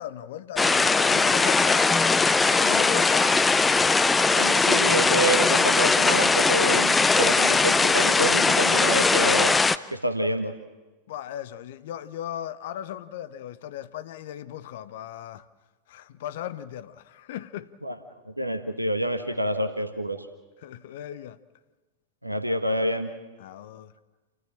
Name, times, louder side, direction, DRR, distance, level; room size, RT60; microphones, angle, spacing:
voice 1, 0.0-3.4 11.1-15.5 15.9-17.7 20.6-21.4 23.4-23.9, left 11 dB, 55° left, 0.8 m, -37 dB
sound 1, 0.6-9.8, left 4 dB, 10° left, 0.6 m, -20 dB
voice 2, 4.4-9.6 9.9-10.5 17.8-18.0 18.2-20.3 22.2-23.1, right 1 dB, 85° right, 1.2 m, -27 dB
28.5 x 14.5 x 7.4 m
figure-of-eight pair, 90°, 0 cm